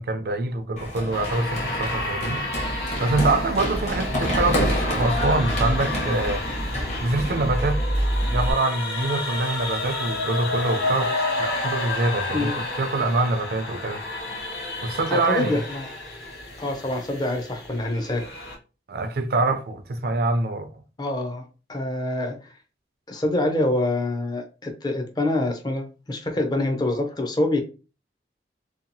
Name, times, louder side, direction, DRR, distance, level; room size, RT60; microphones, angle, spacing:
voice 1, 0.0-2.4 3.0-6.4 7.0-12.5 12.8-14.0 14.8-15.6 18.9-20.7, right 2 dB, 60° right, 0.4 m, -25 dB
Run, 0.8-8.5, equal, 40° left, 0.9 m, -27 dB
sound 1, 1.1-18.6, left 2 dB, 70° left, 0.8 m, -31 dB
voice 2, 15.1-16.0 16.6-18.3 21.0-22.6 23.1-27.6, left 1 dB, 25° left, 0.5 m, -26 dB
2.7 x 2.3 x 2.6 m
head